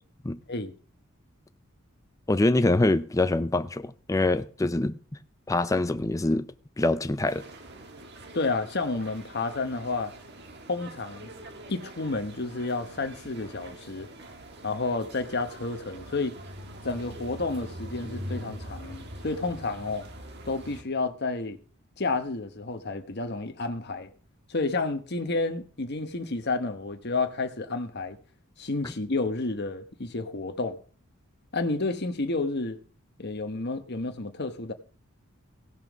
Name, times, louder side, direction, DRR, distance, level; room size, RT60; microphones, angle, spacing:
voice 1, 2.3-5.0 5.5-6.5 6.8-7.4, left 2 dB, 15° left, 0.4 m, -24 dB
sound 1, 7.3-20.8, right 1 dB, 50° right, 1.6 m, -43 dB
voice 2, 8.3-10.1 10.7-11.3 11.7-14.1 14.6-16.4 16.8-20.1 20.4-21.6 22.0-24.1 24.5-28.2 28.6-30.8 31.5-32.8 33.2-34.7, left 3 dB, 50° left, 1.1 m, -30 dB
16.5 x 5.7 x 6.2 m
head